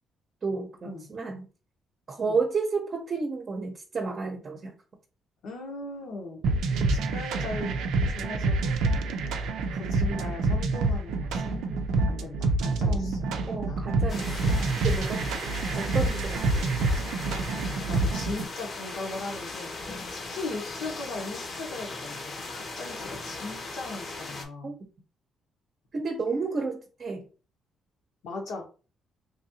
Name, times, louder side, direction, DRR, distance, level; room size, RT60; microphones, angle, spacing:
voice 1, 0.4-1.5 2.1-4.7 12.8-16.7 24.6-24.7 25.9-27.2, right 4 dB, 45° right, 2 dB, 0.7 m, -32 dB
voice 2, 5.4-6.4 6.7-7.7 8.1-9.1 9.7-11.8 12.1-13.9 16.7-19.7 20.1-24.7 28.2-28.7, left 3 dB, 80° left, 0 dB, 1.3 m, -39 dB
sound 1, 6.4-18.4, right 3 dB, 85° right, 0.4 m, -27 dB
sound 2, 14.1-24.4, left 3 dB, 45° left, 0.9 m, -38 dB
3.2 x 2.7 x 2.7 m, 0.34 s
cardioid pair, 90°, 0 cm